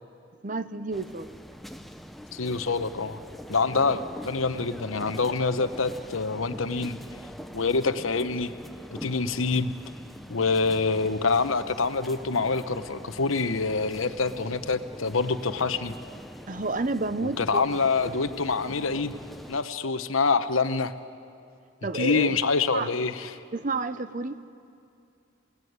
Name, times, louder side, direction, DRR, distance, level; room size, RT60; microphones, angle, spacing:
voice 1, 0.4-1.4 16.5-18.2 21.8-22.4 22.7-22.9 23.5-24.4, right 3 dB, 40° right, 13 dB, 0.8 m, -31 dB
sound 1, 0.9-19.6, equal, ahead, 0.7 m, -43 dB
voice 2, 2.3-3.2 3.5-7.0 7.5-8.5 8.9-9.7 10.3-15.9 17.4-19.1 19.5-20.9 21.9-23.3, left 4 dB, 90° left, 11 dB, 1.0 m, -26 dB
28.5 x 18.0 x 9.5 m, 2.5 s
head